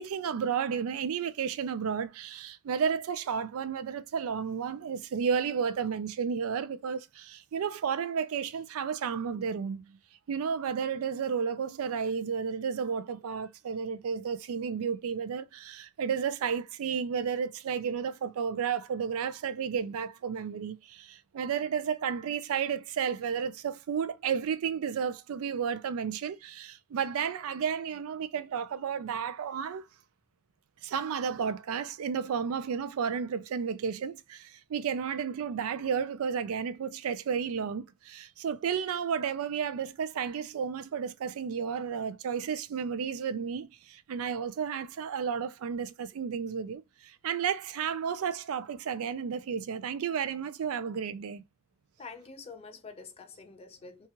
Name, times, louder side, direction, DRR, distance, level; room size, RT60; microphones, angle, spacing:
voice 1, 0.0-10.0 10.3-29.8 30.8-51.4, right 7 dB, 70° right, 0.3 m, -32 dB
voice 2, 52.0-54.1, left 4 dB, 25° left, 0.4 m, -46 dB
2.9 x 2.3 x 2.7 m
head